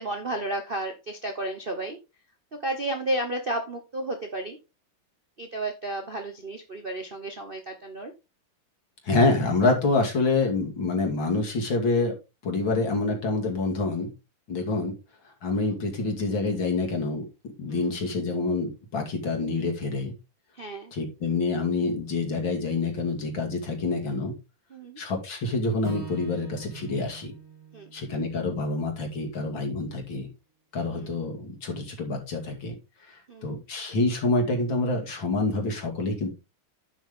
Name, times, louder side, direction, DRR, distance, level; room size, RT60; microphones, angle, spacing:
voice 1, 0.0-2.0 2.6-4.6 5.4-8.1 15.5-15.8 17.7-17.9 20.5-20.9 24.7-25.0 27.7-27.9 31.0-31.2 33.3-33.6, right 1 dB, 40° right, 3 dB, 0.8 m, -32 dB
voice 2, 9.0-12.2 12.4-14.1 14.5-14.9 15.4-17.2 17.6-20.1 20.9-24.3 25.0-27.3 27.9-30.3 30.7-32.8 33.1-36.3, left 3 dB, 60° left, 2 dB, 3.2 m, -27 dB
Acoustic guitar / Strum, 25.8-30.1, right 7 dB, 70° right, 4.0 m, -45 dB
10.5 x 6.2 x 3.6 m, 0.28 s
omnidirectional pair, 2.4 m